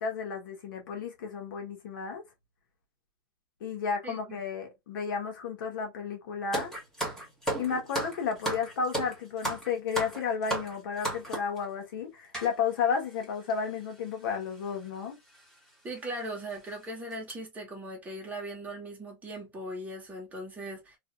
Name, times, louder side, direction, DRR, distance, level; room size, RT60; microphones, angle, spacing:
voice 1, 0.0-2.2 3.6-6.7 7.6-15.2, left 6 dB, 75° left, 1.5 m, -32 dB
voice 2, 4.0-4.4 15.8-21.0, right 1 dB, 15° right, 1.6 m, -39 dB
sound 1, 6.5-11.6 12.3-12.5 13.2-13.3 13.5-13.7 14.7-14.9 15.3-15.4 16.0-16.1 16.5-16.7 17.1-17.3, right 1 dB, 5° left, 1.5 m, -34 dB
3.3 x 3.0 x 2.6 m
supercardioid pair, 145°, 11 cm